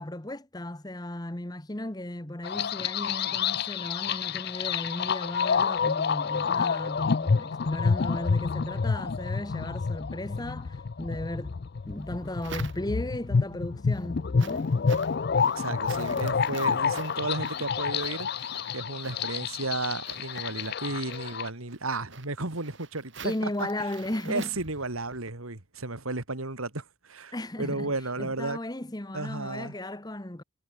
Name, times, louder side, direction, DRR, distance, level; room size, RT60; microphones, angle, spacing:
voice 1, 0.0-11.6 11.9-14.7 23.2-24.5 27.3-30.4, left 1 dB, 20° left, 1.1 m, -35 dB
sound 1, 2.4-21.5, left 5 dB, 50° left, 0.4 m, -29 dB
sound 2, 11.8-13.3 13.7-25.3, right 4 dB, 60° right, 7.7 m, -48 dB
voice 2, 15.5-23.3 23.6-23.7 24.3-28.6 29.1-29.7, right 3 dB, 85° right, 2.9 m, -33 dB
head